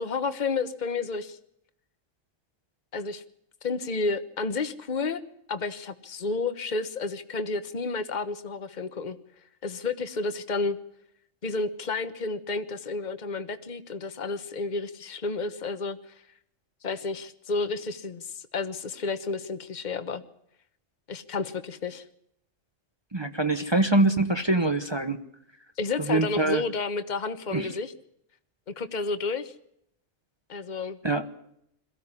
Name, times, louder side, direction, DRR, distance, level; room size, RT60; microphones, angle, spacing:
voice 1, 0.0-1.4 2.9-3.2 3.6-5.2 5.5-9.2 9.6-10.8 11.4-16.1 16.8-20.2 21.1-22.0 25.8-27.9 28.7-29.5 30.5-31.0, left 4 dB, 35° left, 10 dB, 1.3 m, -31 dB
voice 2, 23.1-25.2 26.1-26.6 27.5-27.7 31.0-31.2, right 2 dB, 20° right, 8 dB, 1.0 m, -24 dB
22.5 x 15.0 x 9.8 m, 0.74 s
omnidirectional pair, 1.3 m